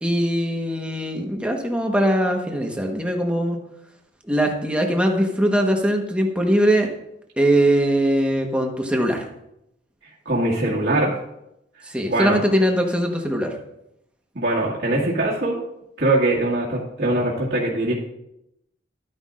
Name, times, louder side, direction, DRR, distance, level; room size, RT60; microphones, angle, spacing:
voice 1, 0.0-3.6 4.2-6.9 7.4-9.3 11.9-13.5, equal, 5° right, 2 dB, 1.2 m, -21 dB
voice 2, 10.3-11.2 12.1-12.4 14.4-15.6 16.0-17.9, right 2 dB, 70° right, -7 dB, 2.0 m, -22 dB
12.5 x 9.7 x 2.5 m, 0.82 s
head